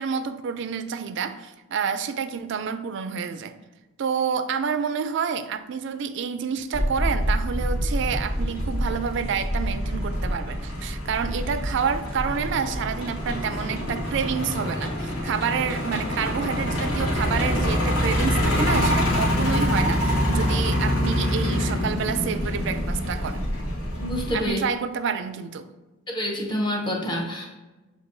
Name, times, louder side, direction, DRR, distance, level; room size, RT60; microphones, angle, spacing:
voice 1, 0.0-3.5 4.0-23.5 24.3-25.7, right 6 dB, 55° right, 0.3 m, -28 dB
Truck, 6.7-24.5, equal, 80° left, 1.3 m, -26 dB
voice 2, 24.0-24.6 26.1-27.5, left 1 dB, 20° left, 0.7 m, -27 dB
6.9 x 2.6 x 2.6 m
head